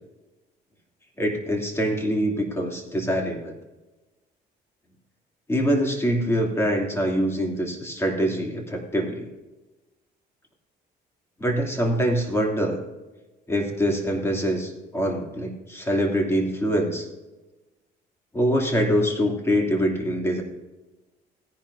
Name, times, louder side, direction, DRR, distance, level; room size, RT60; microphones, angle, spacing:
voice 1, 1.2-3.5 5.5-9.3 11.4-12.8 13.5-17.1 18.3-20.4, equal, 15° left, 0 dB, 2.9 m, -24 dB
17.0 x 10.5 x 2.7 m, 1.1 s
cardioid pair, 110°, 17 cm